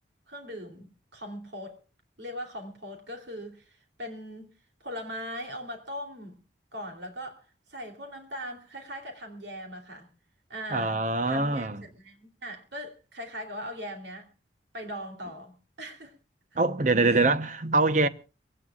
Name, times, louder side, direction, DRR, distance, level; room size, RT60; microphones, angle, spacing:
voice 1, 0.3-1.8 2.2-4.5 4.8-6.4 6.7-10.1 10.5-14.3 14.7-16.1 17.0-17.2, equal, 75° right, 3.2 m, -40 dB
voice 2, 10.7-11.8 16.6-18.1, right 3 dB, 40° right, 0.9 m, -24 dB
23.5 x 17.5 x 2.4 m
head